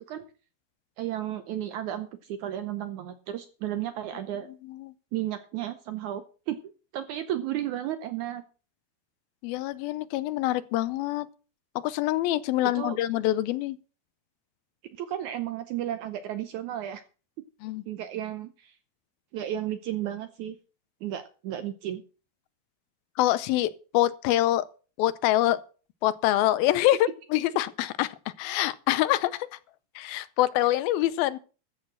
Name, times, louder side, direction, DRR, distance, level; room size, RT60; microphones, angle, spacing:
voice 1, 1.0-4.5 5.1-6.6 6.9-8.4 12.6-13.0 15.0-17.0 17.9-18.7 19.3-20.6 21.0-22.0, right 12 dB, 75° right, 1.8 m, -33 dB
voice 2, 9.4-11.3 11.8-13.8 17.6-17.8 23.2-24.7 25.0-25.6 26.0-29.5 30.0-31.4, left 15 dB, 80° left, 2.5 m, -25 dB
13.5 x 6.5 x 7.2 m
omnidirectional pair, 4.3 m